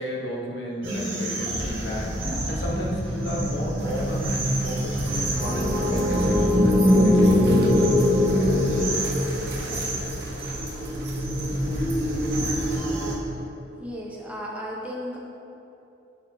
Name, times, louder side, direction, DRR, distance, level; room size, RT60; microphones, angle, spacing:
voice 1, 0.0-8.0, equal, 65° left, -2 dB, 1.0 m, -33 dB
sound 1, 0.8-13.1, equal, 80° right, 1.4 m, -24 dB
sound 2, 1.4-3.8 4.9-7.3 8.3-10.6 11.1-13.5, equal, 30° right, 1.1 m, -35 dB
sound 3, 3.8-12.8, right 1 dB, 55° right, 0.9 m, -39 dB
voice 2, 13.8-15.2, equal, 5° right, -4 dB, 0.8 m, -34 dB
10.5 x 4.2 x 2.7 m, 2.7 s
head